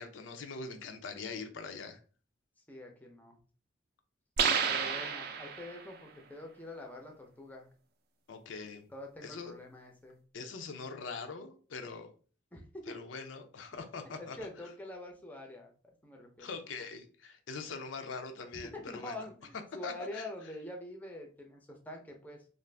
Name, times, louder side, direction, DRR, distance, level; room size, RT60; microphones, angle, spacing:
voice 1, 0.0-2.0 8.3-8.8 9.2-9.5 10.3-12.1 12.9-14.4 16.4-19.1 19.8-20.2, left 4 dB, 80° left, 6 dB, 0.5 m, -42 dB
voice 2, 2.7-3.4 4.6-7.7 8.9-10.2 12.5-13.0 14.2-15.7 16.0-16.6 18.7-22.5, left 1 dB, 10° left, 1 dB, 0.5 m, -45 dB
sound 1, 4.4-5.9, right 6 dB, 55° right, 0.4 m, -31 dB
2.4 x 2.4 x 3.3 m, 0.39 s
head